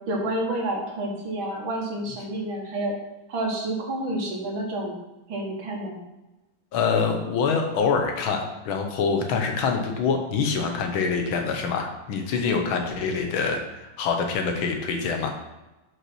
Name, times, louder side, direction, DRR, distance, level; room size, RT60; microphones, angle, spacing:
voice 1, 0.1-3.0 3.3-5.0 5.3-6.0, right 1 dB, 70° right, -1 dB, 2.3 m, -29 dB
voice 2, 6.7-15.3, left 5 dB, 80° left, 4 dB, 1.8 m, -25 dB
5.9 x 5.5 x 6.0 m, 1.0 s
omnidirectional pair, 2.2 m